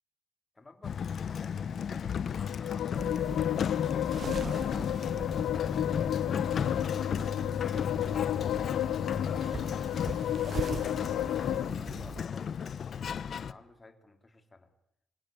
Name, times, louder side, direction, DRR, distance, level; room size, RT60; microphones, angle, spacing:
voice 1, 0.5-4.0 4.3-5.8 6.6-10.4 11.0-14.7, left 3 dB, 25° left, 6 dB, 3.3 m, -54 dB
Sliding door, 0.8-13.5, left 7 dB, 55° left, 0.9 m, -34 dB
sound 1, 2.3-11.7, left 12 dB, 80° left, 0.8 m, -33 dB
sound 2, 3.0-12.2, right 6 dB, 45° right, 0.9 m, -43 dB
25.0 x 17.5 x 9.0 m, 0.80 s
cardioid pair, 90°, 0 cm